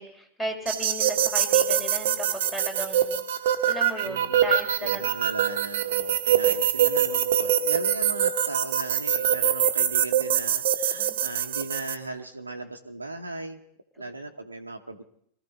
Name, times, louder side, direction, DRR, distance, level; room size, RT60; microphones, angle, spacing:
voice 1, 0.0-3.2 3.7-5.0 6.5-6.6 11.0-11.2, right 1 dB, 10° left, 2 dB, 4.1 m, -35 dB
sound 1, 0.7-11.9, right 9 dB, 55° right, 1.1 m, -24 dB
voice 2, 4.0-13.6 14.0-15.0, right 2 dB, 80° right, 4 dB, 1.0 m, -37 dB
23.0 x 14.0 x 4.0 m, 0.67 s
figure-of-eight pair, 90°, 0 cm